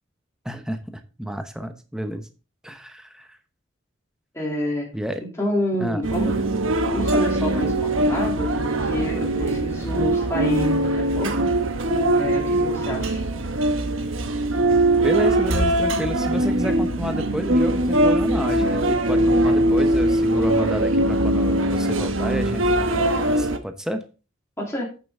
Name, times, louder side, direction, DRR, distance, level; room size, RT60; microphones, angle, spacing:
voice 1, 0.4-0.8 1.2-2.3 2.6-3.4 4.9-5.2 5.8-6.0 15.0-24.0, equal, 5° right, 7 dB, 0.9 m, -30 dB
voice 2, 4.3-4.9 5.4-6.3 6.9-11.5 12.1-13.2 24.6-24.9, equal, 15° left, -3 dB, 2.8 m, -28 dB
sound 1, 6.0-23.6, right 1 dB, 85° right, 1.1 m, -21 dB
8.7 x 7.6 x 3.6 m, 0.33 s
head